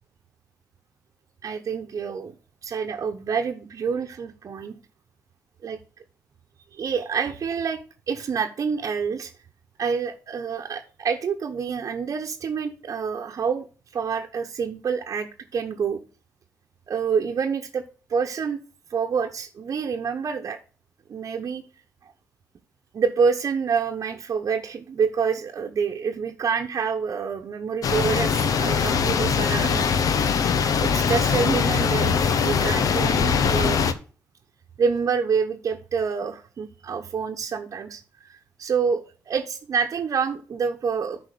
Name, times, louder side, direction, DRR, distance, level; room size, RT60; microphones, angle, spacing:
voice 1, 1.4-2.3 2.6-4.8 5.6-5.8 6.7-7.8 8.1-9.3 9.8-13.7 13.9-16.0 16.9-17.8 18.1-18.6 18.9-20.6 21.1-21.6 22.9-29.9 30.8-33.8 34.8-38.0 38.3-41.2, right 6 dB, 55° right, 2 dB, 1.1 m, -27 dB
sound 1, 27.8-33.9, left 6 dB, 65° left, 0.9 m, -22 dB
10.5 x 4.4 x 6.7 m, 0.37 s
hypercardioid pair, 45°, 7 cm